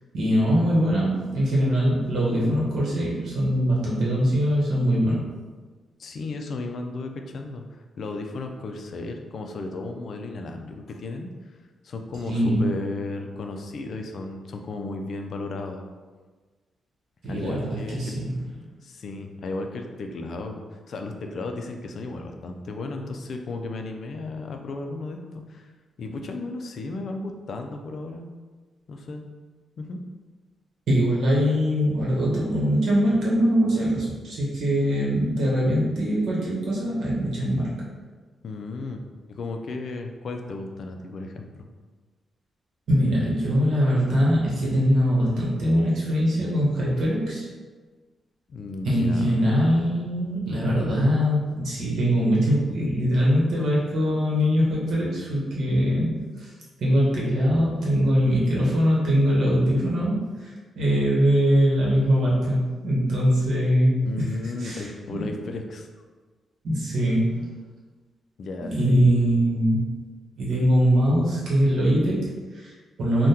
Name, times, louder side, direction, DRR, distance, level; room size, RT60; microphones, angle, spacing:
voice 1, 0.1-5.2 12.3-12.6 17.2-18.3 30.9-37.7 42.9-47.5 48.8-56.5 56.8-64.3 64.6-65.3 66.6-67.5 68.6-69.8 70.4-73.3, equal, 75° right, -5 dB, 1.0 m, -22 dB
voice 2, 6.0-11.3 11.8-15.8 17.2-18.2 18.8-25.7 26.0-28.3 28.9-29.2 29.8-30.0 38.4-41.5 48.5-49.5 64.1-65.9 68.4-69.1, left 3 dB, 55° left, 4 dB, 0.3 m, -34 dB
3.5 x 2.2 x 2.8 m, 1.4 s
cardioid pair, 115°, 0 cm